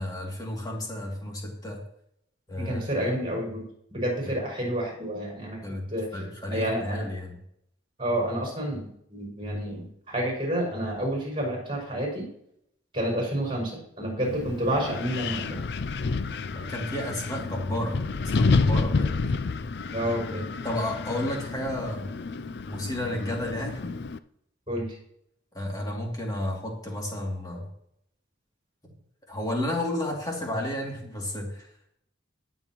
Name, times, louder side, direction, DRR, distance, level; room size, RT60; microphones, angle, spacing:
voice 1, 0.0-1.8 2.5-2.9 5.6-5.9 6.1-7.3 16.5-18.1 18.4-19.2 20.6-22.1 22.7-23.9 25.5-27.7 29.3-31.7, left 1 dB, 20° left, -2 dB, 2.7 m, -32 dB
voice 2, 2.6-3.6 3.9-5.6 5.9-6.2 6.5-7.0 8.0-12.3 12.9-13.7 14.0-15.6 19.9-20.5 24.7-25.0, right 1 dB, 25° right, -2 dB, 5.5 m, -29 dB
Wind, 14.2-24.2, left 4 dB, 60° left, 0.5 m, -29 dB
19.5 x 7.4 x 3.1 m, 0.73 s
head